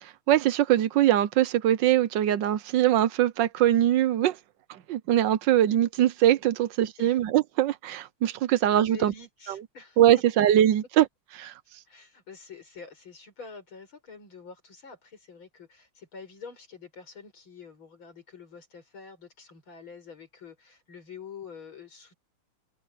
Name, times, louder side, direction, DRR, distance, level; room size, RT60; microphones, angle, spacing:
voice 1, 0.0-4.4 4.9-9.1 10.0-11.1 11.4-11.5, right 12 dB, 65° right, 1.3 m, -22 dB
voice 2, 8.5-10.0 10.3-10.4 11.9-22.2, left 5 dB, 70° left, 6.6 m, -47 dB
omnidirectional pair, 2.3 m